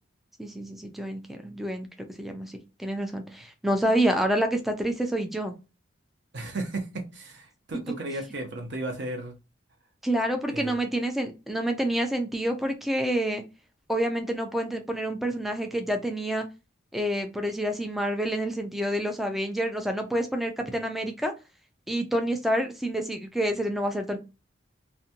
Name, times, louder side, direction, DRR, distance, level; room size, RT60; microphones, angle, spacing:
voice 1, 0.4-1.9 2.2-5.5 10.0-13.4 13.9-16.5 16.9-21.3 21.9-24.2, right 1 dB, ahead, 5 dB, 0.3 m, -28 dB
voice 2, 6.3-9.3 10.5-10.7, right 2 dB, 55° right, 3 dB, 0.5 m, -34 dB
2.5 x 2.2 x 2.7 m, 0.29 s
head